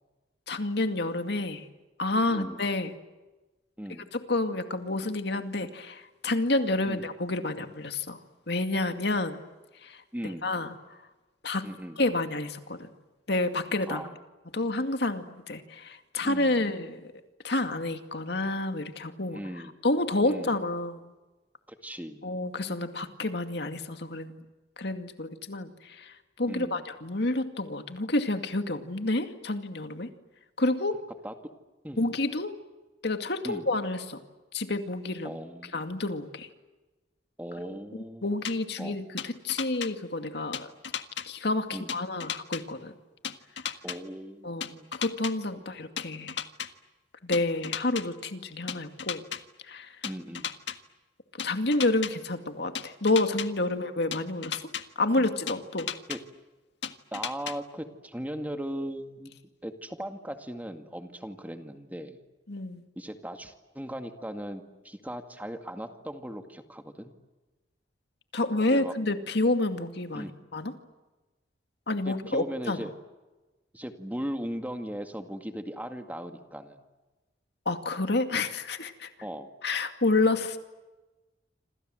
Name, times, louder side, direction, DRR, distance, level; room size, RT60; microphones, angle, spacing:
voice 1, 0.5-1.6 2.0-2.9 4.1-8.2 8.5-9.4 9.8-10.0 10.4-10.7 11.4-11.7 12.0-12.9 13.3-14.0 14.5-17.0 17.4-19.4 19.8-21.1 22.2-24.4 24.8-30.1 30.6-31.0 32.0-32.6 33.0-34.2 34.5-35.3 35.7-36.5 38.2-40.7 41.2-42.9 44.4-46.4 47.2-49.2 49.6-50.0 51.4-54.6 55.0-55.9 62.5-62.9 68.3-70.7 71.9-72.8 77.7-79.1 79.6-80.6, left 2 dB, 65° left, 7 dB, 2.3 m, -29 dB
voice 2, 2.3-2.6 3.8-4.1 6.9-7.1 10.1-10.5 11.6-12.0 13.9-14.2 16.2-16.6 19.3-19.8 20.3-20.5 21.7-22.2 26.5-26.9 31.2-31.3 31.8-32.1 33.4-33.7 35.2-35.8 37.4-38.3 38.8-39.0 41.7-41.9 43.8-44.5 44.7-44.9 45.6-45.7 50.0-50.5 53.7-53.8 55.2-55.3 56.1-56.2 57.1-59.3 59.6-62.2 63.0-67.1 68.7-68.9 70.1-70.3 72.1-72.9 73.7-76.8 79.2-79.5, equal, 10° right, 6 dB, 2.1 m, -38 dB
sound 1, 38.4-38.5 39.2-39.9 40.5-41.3 41.9-42.6 43.2-44.0 44.6-45.3 46.0-46.7 47.3-48.0 48.7-49.4 50.0-50.8 51.4-52.1 52.7-53.5 54.1-54.8 55.5-56.2 56.8-57.5, left 8 dB, 85° left, 1.7 m, -34 dB
27.5 x 27.0 x 7.8 m, 1.2 s
head